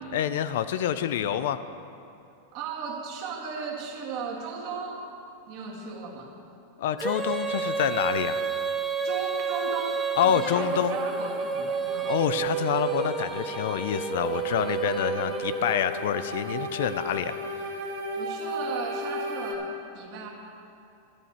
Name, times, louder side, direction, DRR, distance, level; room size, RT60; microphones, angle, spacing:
voice 1, 0.1-1.6 6.8-8.4 10.2-11.0 12.1-17.4, left 10 dB, 65° left, 12 dB, 0.4 m, -27 dB
voice 2, 2.5-5.0 5.5-6.3 9.0-12.1 18.2-20.3, right 5 dB, 40° right, 0 dB, 1.6 m, -36 dB
Female singing, 7.0-16.1, right 5 dB, 5° right, 0.4 m, -30 dB
sound 1, 10.5-19.5, right 1 dB, 60° right, 1.5 m, -36 dB
12.0 x 11.0 x 4.3 m, 2.7 s
supercardioid pair, 165°, 0 cm